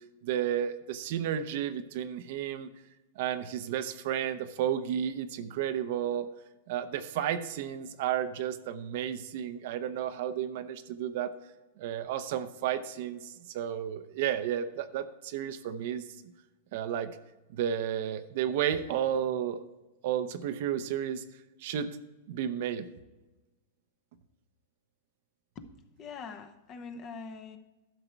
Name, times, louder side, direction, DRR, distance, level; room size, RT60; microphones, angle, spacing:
voice 1, 0.2-2.7 3.2-6.3 6.7-11.3 11.8-16.3 16.7-17.2 17.5-19.6 20.0-21.2 21.6-21.9 22.3-22.9, right 10 dB, 60° right, 10 dB, 0.7 m, -32 dB
voice 2, 26.0-27.6, left 5 dB, 30° left, 8 dB, 0.9 m, -43 dB
12.0 x 6.6 x 4.6 m, 1.1 s
supercardioid pair, 145°, 0 cm